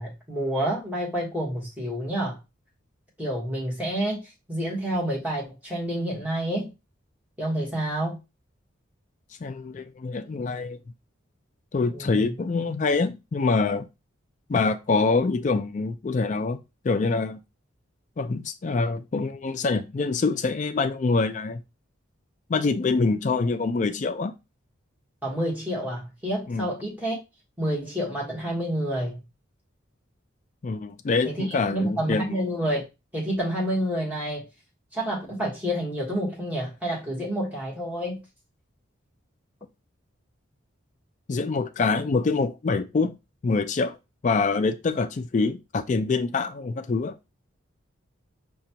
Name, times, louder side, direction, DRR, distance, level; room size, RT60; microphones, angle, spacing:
voice 1, 0.0-2.4 3.2-6.7 7.4-8.2 11.9-12.4 25.2-27.2 27.6-29.2 31.2-32.8 33.1-34.4 34.9-38.2, right 1 dB, 10° right, 1.1 m, -29 dB
voice 2, 9.4-10.8 11.7-13.9 14.5-16.6 16.8-17.4 18.2-21.6 22.5-24.3 26.5-26.7 30.6-32.3 41.3-43.1 43.4-44.0 44.2-47.1, left 4 dB, 35° left, 0.3 m, -25 dB
4.9 x 2.2 x 2.8 m
head